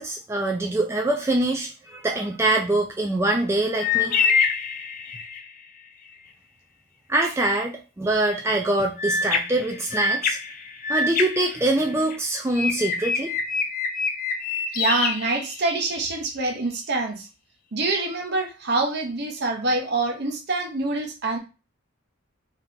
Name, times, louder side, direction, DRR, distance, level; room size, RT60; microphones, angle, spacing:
voice 1, 0.0-4.4 7.1-10.4 10.9-13.3, right 2 dB, 15° right, 1 dB, 0.3 m, -24 dB
sound 1, 3.8-5.5 9.0-12.2 12.6-16.0, left 5 dB, 45° left, 0.5 m, -26 dB
voice 2, 14.7-17.3 17.7-21.4, right 3 dB, 50° right, 4 dB, 0.8 m, -25 dB
3.3 x 2.8 x 3.7 m, 0.32 s
head